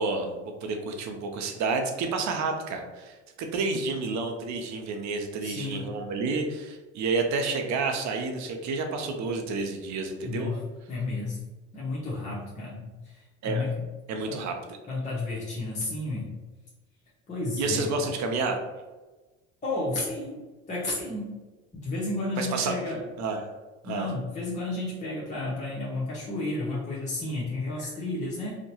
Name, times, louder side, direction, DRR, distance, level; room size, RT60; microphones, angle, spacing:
voice 1, 0.0-10.5 13.4-13.7 14.1-14.6 17.6-18.6 22.4-22.8 23.2-23.4 23.8-24.1, right 3 dB, 55° right, 4 dB, 0.6 m, -30 dB
voice 2, 5.4-6.0 10.2-10.6 10.9-11.4 11.7-13.8 14.3-14.4 14.9-16.3 17.3-18.1 19.6-21.4 21.7-23.1 23.8-28.5, left 2 dB, 20° left, -7 dB, 0.8 m, -32 dB
2.7 x 2.2 x 2.8 m, 1.2 s
supercardioid pair, 85°, 34 cm